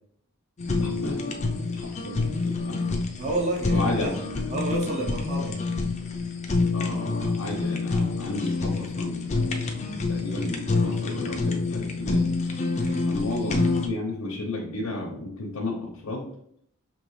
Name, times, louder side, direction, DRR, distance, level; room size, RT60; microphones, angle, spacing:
Fire, 0.6-13.9, left 3 dB, 30° left, 0.5 m, -27 dB
voice 1, 0.8-1.3 1.7-3.0 3.7-4.1 4.6-4.7 6.7-9.3 10.1-12.3 13.1-16.3, left 2 dB, 80° left, -1 dB, 0.8 m, -33 dB
voice 2, 3.2-4.1 4.5-5.6 12.8-13.1, right 2 dB, 30° right, -2 dB, 0.6 m, -30 dB
5.3 x 2.9 x 3.2 m, 0.69 s
head